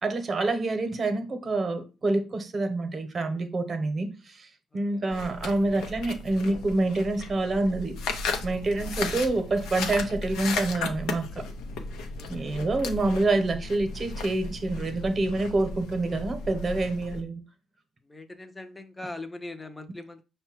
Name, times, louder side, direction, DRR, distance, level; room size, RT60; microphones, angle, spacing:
voice 1, 0.0-4.5 4.7-8.0 8.4-11.5 12.3-17.4, right 2 dB, 35° right, 0.9 m, -27 dB
voice 2, 4.7-5.1 8.8-8.9 12.2-12.6 18.0-20.2, left 2 dB, 15° left, 0.6 m, -42 dB
sound 1, 5.1-17.2, left 4 dB, 90° left, 0.6 m, -35 dB
5.3 x 2.2 x 4.4 m
cardioid pair, 90°, 0 cm